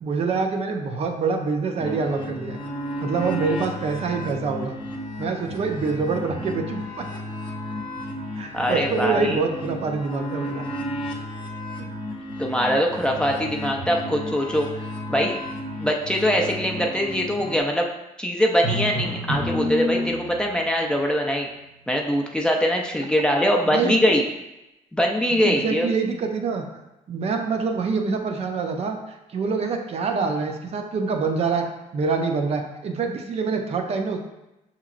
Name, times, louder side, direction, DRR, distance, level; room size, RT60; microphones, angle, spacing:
voice 1, 0.0-2.6 3.0-4.8 5.2-7.1 8.4-10.6 11.8-11.9 23.7-23.9 25.3-26.6 27.1-29.0 29.3-31.7 31.9-34.2, right 4 dB, 50° right, 3 dB, 0.5 m, -25 dB
sound 1, 1.8-17.6, left 1 dB, 35° left, 0.7 m, -33 dB
voice 2, 8.5-9.4 12.4-14.7 15.1-15.4 15.8-17.9 18.2-21.5 21.9-24.2 24.9-25.9, equal, 5° left, 0 dB, 0.4 m, -22 dB
Drum, 18.6-20.7, equal, 75° right, 1.0 m, -27 dB
5.6 x 2.9 x 2.4 m, 0.93 s
cardioid pair, 120°, 14 cm